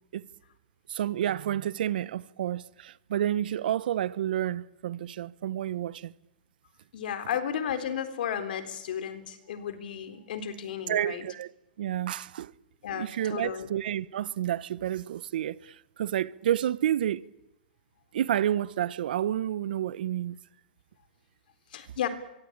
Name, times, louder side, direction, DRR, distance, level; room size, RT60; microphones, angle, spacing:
voice 1, 0.9-6.1 10.9-11.5 11.8-12.5 12.9-17.2 18.1-20.4, right 11 dB, 70° right, 1.0 m, -30 dB
voice 2, 6.9-11.2 12.8-13.7 21.7-22.1, left 9 dB, 65° left, 3.9 m, -33 dB
24.0 x 24.0 x 8.8 m
hypercardioid pair, 140°, 5 cm